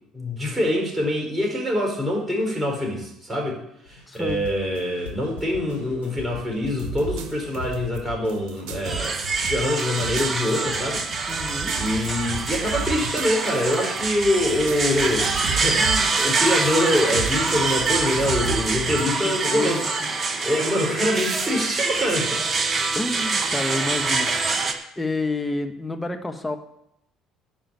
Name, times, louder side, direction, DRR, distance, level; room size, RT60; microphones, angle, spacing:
voice 1, 0.1-11.0 11.7-19.8 20.4-22.4, left 1 dB, 15° right, -1 dB, 5.1 m, -25 dB
sound 1, 3.9-8.9, left 4 dB, 85° left, 1.6 m, -41 dB
voice 2, 4.1-4.4 11.3-11.7 18.8-20.1 22.9-24.5 25.0-26.6, left 2 dB, 15° left, 5 dB, 1.6 m, -29 dB
sound 2, 6.8-8.0 8.3-16.3 16.5-19.0, right 5 dB, 60° right, 1.7 m, -34 dB
sound 3, 8.8-24.7, right 4 dB, 35° right, 1.5 m, -25 dB
10.5 x 5.6 x 8.6 m, 0.80 s
figure-of-eight pair, 55°, 0 cm